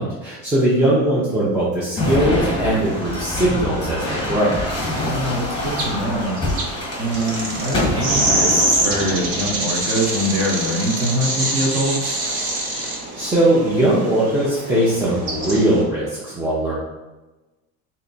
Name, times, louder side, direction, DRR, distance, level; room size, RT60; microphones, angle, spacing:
voice 1, 0.0-4.6 13.1-16.8, right 1 dB, 10° right, -8 dB, 0.4 m, -20 dB
sound 1, 2.0-11.3 12.0-12.6 13.7-14.3, left 2 dB, 15° left, 1.0 m, -27 dB
sound 2, 2.8-15.8, right 2 dB, 60° right, 1.0 m, -26 dB
voice 2, 5.0-6.4 7.0-12.2, equal, 35° right, -2 dB, 0.9 m, -23 dB
3.3 x 2.9 x 3.9 m, 1.1 s
cardioid pair, 160°, 33 cm